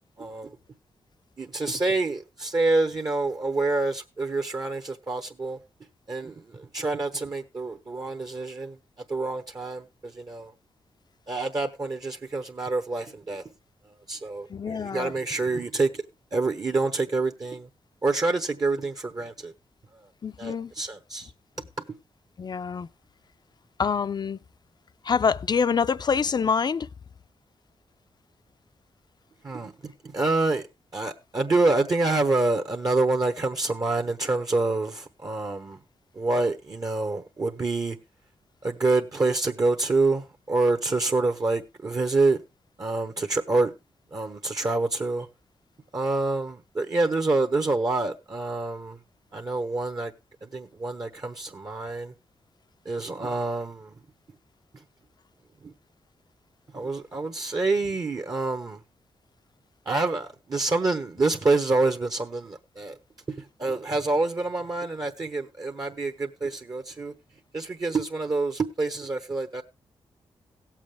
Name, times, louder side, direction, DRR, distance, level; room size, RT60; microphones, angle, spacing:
voice 1, 0.2-0.5 1.4-5.6 6.1-8.8 9.1-10.5 11.3-13.4 14.1-16.0 16.3-17.7 18.0-19.5 20.4-21.3 29.4-30.6 30.9-35.8 36.2-38.0 38.6-42.4 42.8-43.7 44.1-45.3 45.9-49.0 49.3-50.1 50.4-52.1 52.8-53.9 55.6-55.7 56.7-58.8 59.9-63.0 63.4-67.1 67.5-69.6, right 3 dB, 40° right, 1.1 m, -27 dB
voice 2, 14.5-15.1 20.2-20.7 22.4-22.9 23.8-24.4 25.0-26.9, left 6 dB, 45° left, 0.5 m, -26 dB
17.5 x 7.4 x 3.3 m
cardioid pair, 80°, 10 cm